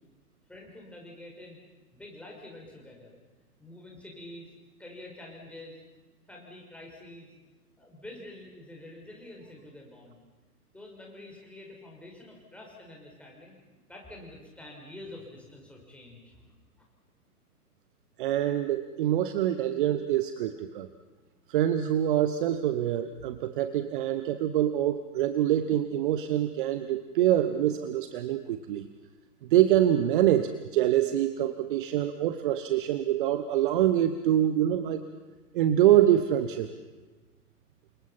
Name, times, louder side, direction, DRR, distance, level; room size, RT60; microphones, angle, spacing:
voice 1, 0.5-1.6 1.9-3.2 3.6-4.5 4.8-5.8 6.3-7.3 7.8-10.2 10.7-16.5 33.5-33.6, left 1 dB, 5° left, -1 dB, 5.7 m, -47 dB
voice 2, 18.2-20.9 21.5-28.9 29.5-35.0 35.5-36.7, right 12 dB, 35° right, 10 dB, 1.2 m, -25 dB
29.0 x 26.0 x 5.9 m, 1.2 s
figure-of-eight pair, 120°, 47 cm